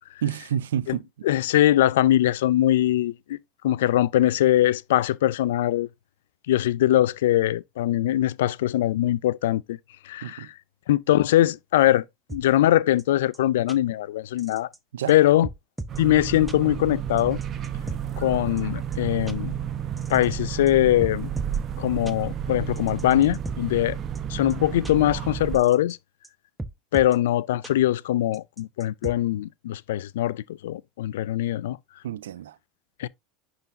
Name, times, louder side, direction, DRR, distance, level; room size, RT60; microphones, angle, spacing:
voice 1, 0.2-1.1 10.2-10.5 14.9-15.1 32.0-32.6, right 10 dB, 90° right, 0.5 m, -29 dB
voice 2, 1.2-3.4 3.6-5.9 6.5-9.8 10.1-10.5 10.9-12.0 12.3-14.7 15.1-15.5 16.0-17.4 18.2-19.5 20.1-21.3 21.8-24.0 24.3-26.0 26.9-31.8 33.0-33.1, left 13 dB, 80° left, 0.3 m, -22 dB
sound 1, 12.3-12.4 13.0-13.1 13.3-13.4 13.7-13.8 14.4-14.8 15.1-15.2 15.4-16.0 16.5-16.6 17.2-18.0 18.6-18.7 18.9-19.0 19.3-19.4 20.0-20.7 21.0-21.6 22.1-22.2 22.8-23.6 24.1-24.2 24.5-24.6 24.8-24.9 25.5-25.9 26.2-26.3 26.6-27.2 27.6-27.7 28.3-29.1, right 2 dB, 10° right, 0.8 m, -36 dB
sound 2, 15.9-25.6, right 9 dB, 40° right, 0.8 m, -32 dB
10.5 x 4.0 x 2.7 m
hypercardioid pair, 100°, 0 cm